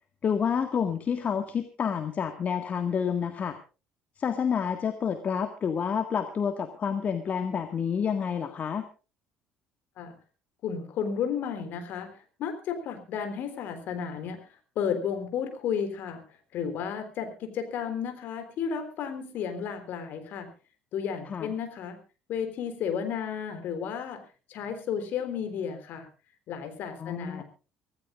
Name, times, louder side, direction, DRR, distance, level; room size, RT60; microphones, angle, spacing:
voice 1, 0.2-3.6 4.2-8.9 21.3-21.5 27.0-27.4, left 7 dB, 40° left, 8 dB, 1.7 m, -29 dB
voice 2, 10.6-12.1 12.4-14.4 14.8-16.2 16.5-20.5 20.9-22.0 22.3-24.2 24.5-26.1 26.5-27.4, left 7 dB, 55° left, 7 dB, 3.8 m, -32 dB
25.5 x 16.5 x 2.5 m, 0.34 s
figure-of-eight pair, 55°, 4 cm